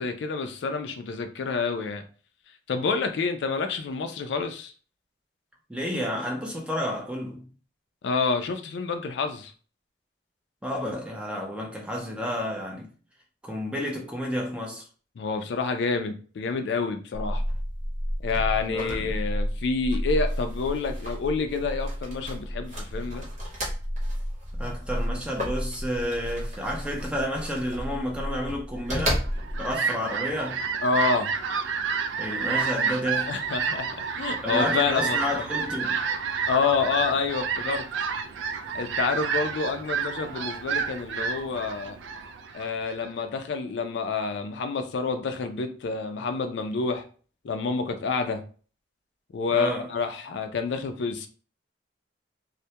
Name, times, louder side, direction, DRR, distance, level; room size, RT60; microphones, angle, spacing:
voice 1, 0.0-2.0 2.7-4.7 8.0-9.5 15.2-17.4 18.2-23.3 30.8-31.3 33.3-35.4 36.5-37.8 38.7-42.0 42.5-47.0 47.4-48.4 49.3-51.3, left 4 dB, 65° left, 0.3 m, -28 dB
voice 2, 5.7-7.5 10.6-12.9 13.4-14.8 18.7-19.2 24.6-29.3 29.6-30.6 32.2-33.4 34.4-36.0 49.5-49.9, equal, 5° right, 0.4 m, -31 dB
sound 1, 17.1-29.8, equal, 40° right, 0.9 m, -31 dB
Fowl, 29.2-43.1, right 6 dB, 80° right, 0.3 m, -30 dB
2.2 x 2.1 x 2.7 m
head